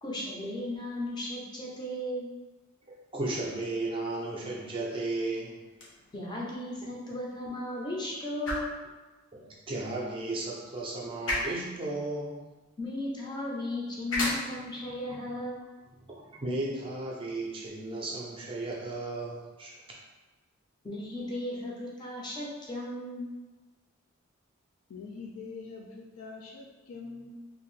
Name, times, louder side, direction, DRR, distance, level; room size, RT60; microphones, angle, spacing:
voice 1, 0.0-2.3 6.1-8.7 12.8-15.7 20.8-23.3, left 1 dB, 20° left, -4 dB, 0.5 m, -35 dB
voice 2, 2.9-5.6 9.3-12.5 14.2-14.4 15.1-15.2 16.0-19.7, right 2 dB, 25° right, -3 dB, 0.5 m, -35 dB
sound 1, 5.6-17.7, left 1 dB, 60° left, 0.7 m, -40 dB
voice 3, 24.9-27.3, left 4 dB, 85° left, -1 dB, 0.4 m, -44 dB
2.6 x 2.4 x 3.1 m, 1.2 s
head